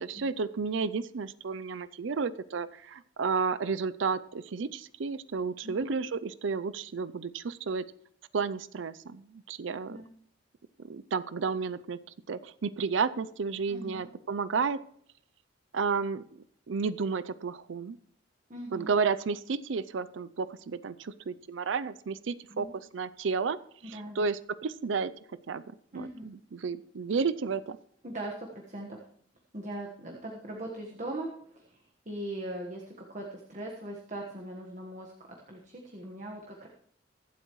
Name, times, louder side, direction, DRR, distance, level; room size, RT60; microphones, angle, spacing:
voice 1, 0.0-7.9 8.3-10.0 10.9-12.0 12.3-14.8 15.7-16.2 16.7-18.0 18.7-22.7 22.9-23.6 23.9-25.1 25.5-25.6 25.9-27.8, right 5 dB, 80° right, 15 dB, 0.5 m, -32 dB
voice 2, 13.7-14.1 18.5-18.9 22.5-22.7 23.8-24.2 25.9-26.3 28.0-29.0 29.5-31.8 32.0-36.7, right 1 dB, 40° right, 0 dB, 1.4 m, -40 dB
23.5 x 8.1 x 3.1 m, 0.65 s
head